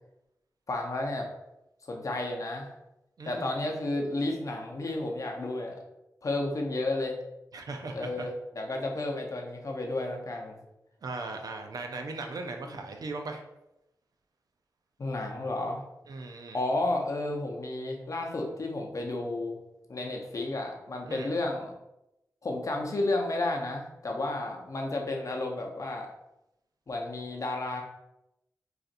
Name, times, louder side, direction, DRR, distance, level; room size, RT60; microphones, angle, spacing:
voice 1, 0.7-1.3 1.9-2.7 3.2-5.8 6.2-7.2 7.9-10.6 12.6-12.7 15.0-15.8 16.5-19.6 19.9-21.7 22.4-26.1 26.9-27.8, left 2 dB, 50° left, 1 dB, 0.7 m, -32 dB
voice 2, 3.2-3.5 7.5-8.3 11.0-13.4 16.1-16.6 21.1-21.3, right 3 dB, 70° right, 4 dB, 0.5 m, -38 dB
3.9 x 2.5 x 2.5 m, 0.89 s
cardioid pair, 50°, 7 cm